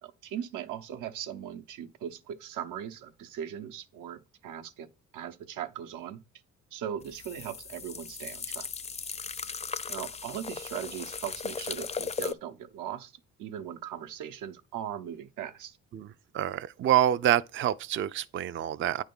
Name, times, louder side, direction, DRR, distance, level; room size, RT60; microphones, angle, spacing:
voice 1, 0.0-6.2 6.7-8.7 9.9-13.1 13.4-15.8, right 9 dB, 85° right, 0.9 m, -39 dB
sound 1, 7.0-12.3, left 5 dB, 20° left, 0.4 m, -37 dB
voice 2, 16.3-19.0, right 11 dB, 40° right, 0.4 m, -26 dB
9.4 x 3.6 x 5.4 m
cardioid pair, 90°, 30 cm